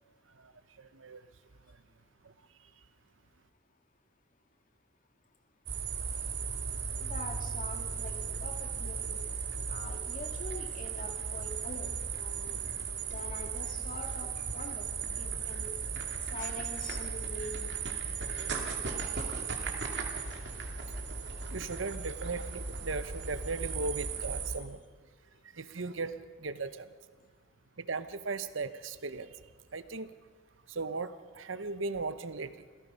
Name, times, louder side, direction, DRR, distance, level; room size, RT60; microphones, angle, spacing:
voice 1, 0.8-1.3 2.2-2.3 21.5-24.8 25.5-26.9 27.8-29.4 29.7-30.1 30.7-32.6, right 3 dB, 80° right, 13 dB, 0.9 m, -37 dB
sound 1, 5.7-24.6, right 5 dB, 55° right, 2.6 m, -36 dB
voice 2, 7.0-9.2 9.7-12.6 13.1-14.9 15.1-15.8 16.3-17.8, left 2 dB, 40° left, 4 dB, 2.2 m, -44 dB
27.0 x 17.0 x 5.6 m, 1.5 s
head